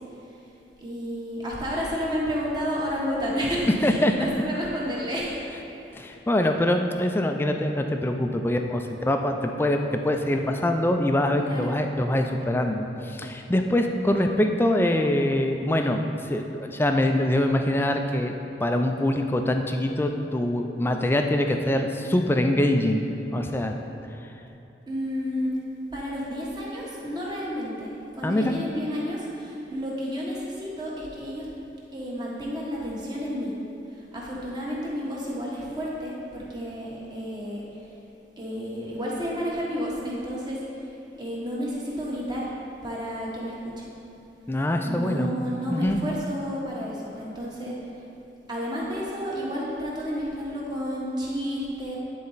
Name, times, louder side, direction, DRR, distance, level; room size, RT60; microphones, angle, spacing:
voice 1, 0.8-5.5 6.1-6.2 11.4-11.7 24.9-25.5 25.9-31.5 31.9-33.5 33.9-37.6 38.4-40.6 41.2-42.5 42.8-43.9 44.8-47.8 48.5-52.0, equal, 25° right, -6 dB, 1.3 m, -31 dB
voice 2, 5.9-16.0 16.3-23.7 28.2-28.6 44.5-45.3 45.7-46.0, left 1 dB, 15° left, 4 dB, 0.3 m, -24 dB
9.6 x 4.1 x 4.0 m, 2.9 s
head